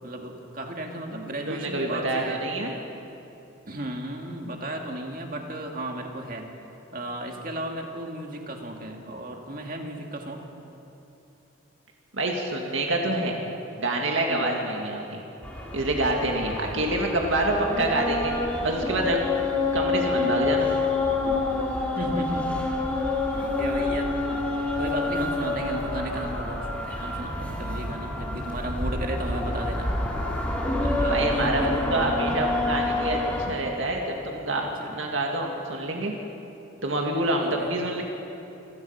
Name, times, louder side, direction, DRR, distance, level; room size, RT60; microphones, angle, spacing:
voice 1, 0.0-2.4 3.7-6.5 6.9-10.5 14.3-14.5 16.4-17.1 17.5-17.6 20.2-20.4 21.3-21.4 22.0-22.6 23.3-24.5 24.8-29.9 30.8-31.9 34.6-35.0 37.4-37.7, right 1 dB, 45° right, 2 dB, 2.1 m, -34 dB
voice 2, 1.5-2.7 12.1-13.4 13.8-15.2 15.7-18.3 18.6-19.2 19.7-20.7 31.1-33.2 33.5-34.6 34.9-36.1 36.8-38.0, right 2 dB, 75° right, 0 dB, 2.0 m, -26 dB
sound 1, 15.4-33.5, left 2 dB, 5° left, 2.8 m, -28 dB
27.0 x 17.0 x 5.8 m, 3.0 s
head